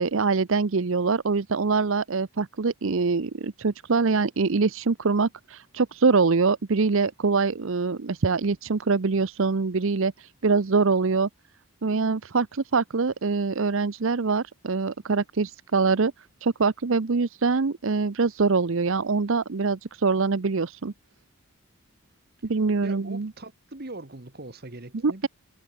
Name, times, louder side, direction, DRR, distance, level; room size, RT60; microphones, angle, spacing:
voice 1, 0.0-11.3 11.8-16.1 16.4-20.9 22.4-23.3 25.0-25.3, right 4 dB, 60° right, 0.7 m, -24 dB
voice 2, 22.8-25.3, right 2 dB, 45° right, 1.5 m, -41 dB
head